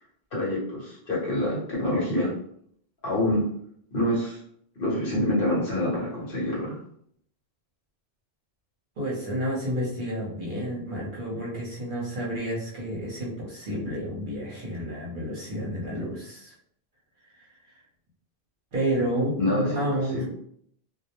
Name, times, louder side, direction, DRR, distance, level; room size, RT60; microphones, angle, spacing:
voice 1, 0.3-2.3 3.0-3.4 3.9-4.4 4.8-6.8 19.4-19.9 20.1-20.2, left 1 dB, 60° left, -5 dB, 1.1 m, -26 dB
voice 2, 9.0-16.5 17.3-17.8 18.7-20.2, equal, 55° right, -3 dB, 0.8 m, -30 dB
2.3 x 2.0 x 2.9 m, 0.66 s
omnidirectional pair, 1.1 m